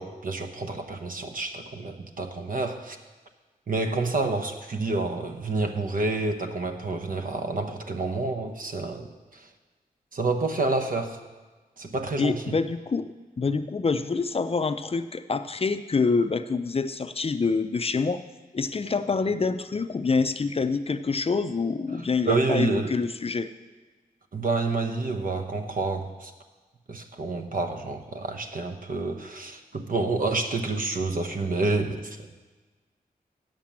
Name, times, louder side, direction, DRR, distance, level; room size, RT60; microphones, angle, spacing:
voice 1, 0.0-3.0 3.7-9.5 10.1-11.2 11.8-12.6 22.2-23.0 24.3-26.3 26.9-32.4, right 3 dB, 60° right, 5 dB, 1.1 m, -28 dB
voice 2, 12.2-18.2 18.5-23.5, left 4 dB, 40° left, 11 dB, 0.5 m, -26 dB
8.8 x 7.5 x 7.4 m, 1.3 s
wide cardioid pair, 80°, 16 cm